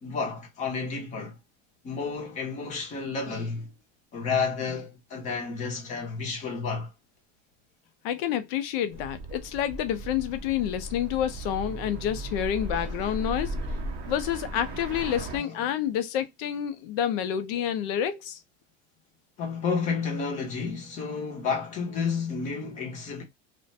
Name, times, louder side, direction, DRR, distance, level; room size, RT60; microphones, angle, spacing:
voice 1, 0.0-1.4 1.8-3.7 4.1-6.9 12.7-13.1 15.3-15.6 19.4-23.2, left 5 dB, 20° left, 0.6 m, -31 dB
voice 2, 8.0-13.6 14.1-18.4, left 10 dB, 60° left, 0.6 m, -28 dB
sound 1, 8.9-15.4, right 1 dB, 30° right, 0.5 m, -36 dB
2.4 x 2.2 x 2.5 m
cardioid pair, 175°, 33 cm